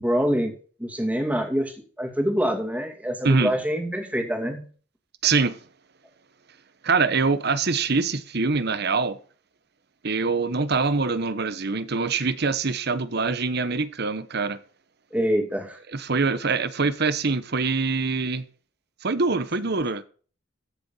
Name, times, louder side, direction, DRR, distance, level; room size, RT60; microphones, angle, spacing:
voice 1, 0.0-0.5 0.8-4.6 15.1-15.8, equal, 5° right, 2.5 m, -25 dB
voice 2, 5.2-5.6 6.8-9.2 10.0-14.6 15.9-18.4 19.0-20.0, right 4 dB, 55° right, 1.1 m, -24 dB
15.0 x 7.0 x 5.5 m
head